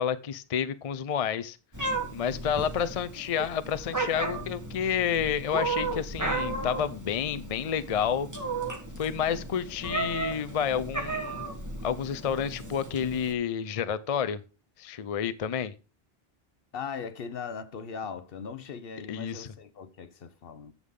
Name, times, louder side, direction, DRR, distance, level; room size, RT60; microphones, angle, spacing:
voice 1, 0.0-1.6 2.1-8.3 9.0-11.5 11.8-14.4 14.8-15.7 19.1-19.5, left 8 dB, 45° left, 0.5 m, -30 dB
Meow, 1.7-13.3, right 2 dB, 20° right, 1.4 m, -34 dB
voice 2, 16.7-20.7, left 6 dB, 70° left, 1.0 m, -39 dB
9.9 x 7.3 x 3.7 m
omnidirectional pair, 1.0 m